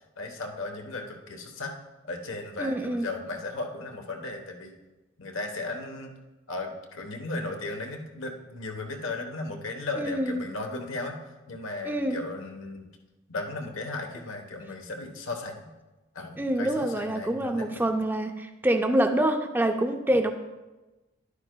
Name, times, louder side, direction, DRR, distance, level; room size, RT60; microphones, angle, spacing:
voice 1, 0.2-1.7 2.0-4.7 5.2-6.1 6.5-12.9 13.3-15.7 16.1-17.9, left 2 dB, 75° left, 3 dB, 1.1 m, -36 dB
voice 2, 2.6-3.1 10.0-10.5 11.8-12.2 16.4-20.3, right 1 dB, 10° right, 6 dB, 0.4 m, -26 dB
11.0 x 9.7 x 2.2 m, 1.1 s
head